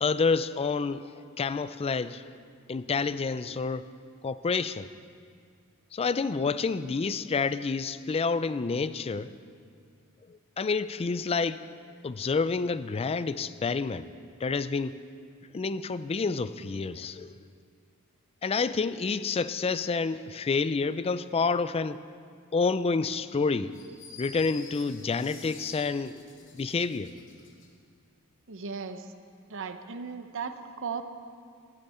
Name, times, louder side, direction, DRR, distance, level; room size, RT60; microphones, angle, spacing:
voice 1, 0.0-2.3 2.7-3.9 4.2-4.9 5.9-9.3 10.3-11.6 12.0-14.1 14.4-15.0 15.5-17.3 18.4-22.0 22.5-23.8 24.2-26.2 26.5-27.1, left 4 dB, 25° left, 15 dB, 0.4 m, -29 dB
sound 1, 23.7-27.7, left 4 dB, 60° left, 2.0 m, -48 dB
voice 2, 28.5-29.1 29.5-31.0, right 5 dB, 60° right, 8 dB, 0.8 m, -36 dB
17.0 x 12.5 x 4.3 m, 2.2 s
head